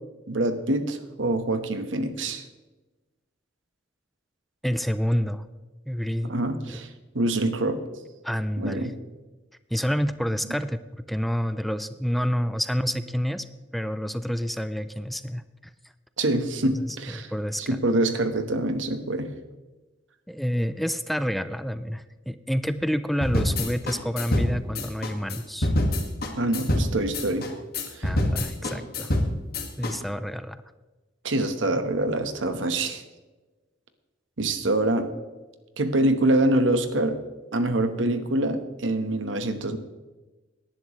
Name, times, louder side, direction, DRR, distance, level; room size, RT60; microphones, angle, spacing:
voice 1, 0.3-2.4 6.3-6.9 7.1-7.8 8.6-8.9 16.2-17.3 17.7-19.3 26.4-27.5 28.0-28.1 31.2-33.0 34.4-35.1 35.8-37.2 37.5-39.8, right 1 dB, 90° right, 8 dB, 1.3 m, -25 dB
voice 2, 4.6-5.4 5.9-6.8 8.2-8.9 9.7-13.4 13.7-15.4 16.8-17.8 20.3-25.7 28.0-29.1 29.8-30.6, equal, ahead, 12 dB, 0.4 m, -28 dB
sound 1, 23.2-29.9, left 1 dB, 55° left, 1.9 m, -26 dB
18.0 x 10.5 x 3.2 m, 1.2 s
head